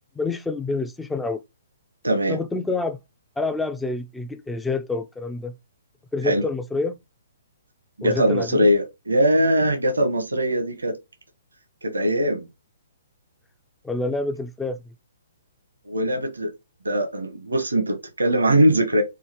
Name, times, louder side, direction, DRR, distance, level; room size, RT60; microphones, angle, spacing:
voice 1, 0.2-1.4 2.3-3.0 3.4-5.6 6.1-7.0 8.0-8.7 13.8-14.8, left 3 dB, 5° left, 0.3 m, -27 dB
voice 2, 2.0-2.4 6.2-6.4 8.0-10.9 11.8-12.5 15.8-16.5 16.8-19.0, equal, 85° right, 1.0 m, -21 dB
4.8 x 2.4 x 3.0 m
hypercardioid pair, 130°, 0 cm